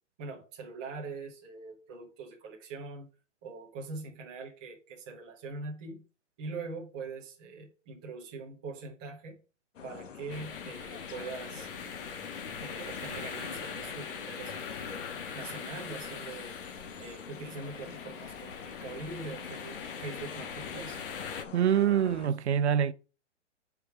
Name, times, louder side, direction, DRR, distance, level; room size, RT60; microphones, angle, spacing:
voice 1, 0.2-3.1 3.4-6.0 6.4-9.4 9.8-11.7 12.6-15.0 15.3-16.6 17.0-21.0, right 3 dB, 5° right, 0.4 m, -42 dB
sound 1, 9.7-22.3, left 7 dB, 85° left, 1.3 m, -46 dB
sound 2, 10.3-21.4, left 6 dB, 50° left, 1.6 m, -42 dB
voice 2, 21.5-22.9, right 9 dB, 65° right, 0.7 m, -25 dB
6.7 x 4.8 x 6.9 m
hypercardioid pair, 165°, 36 cm